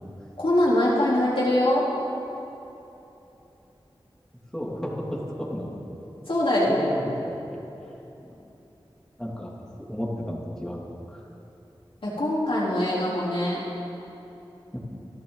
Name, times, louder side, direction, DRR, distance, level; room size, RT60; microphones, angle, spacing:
voice 1, 0.4-1.8 6.3-6.9 12.0-13.6, left 1 dB, 70° left, -7 dB, 3.8 m, -23 dB
voice 2, 4.5-5.2 5.5-5.7 6.7-7.6 8.3-8.4 9.2-9.5 9.9-11.2 14.7-14.8, equal, 5° left, -4 dB, 2.9 m, -33 dB
26.0 x 11.5 x 4.1 m, 2.9 s
wide cardioid pair, 65°, 9 cm